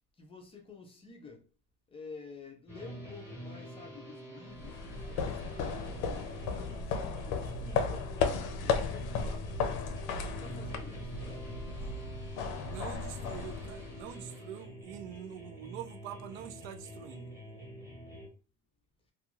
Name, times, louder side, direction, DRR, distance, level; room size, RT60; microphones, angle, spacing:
voice 1, 0.2-1.5 1.9-9.6 10.1-11.5, left 4 dB, 15° left, 0.4 m, -51 dB
sound 1, 2.7-18.3, equal, 5° right, 1.0 m, -47 dB
sound 2, 4.5-14.2, left 5 dB, 60° left, 0.6 m, -35 dB
voice 2, 12.5-17.3, right 11 dB, 70° right, 0.6 m, -45 dB
2.4 x 2.4 x 3.0 m
cardioid pair, 140°, 43 cm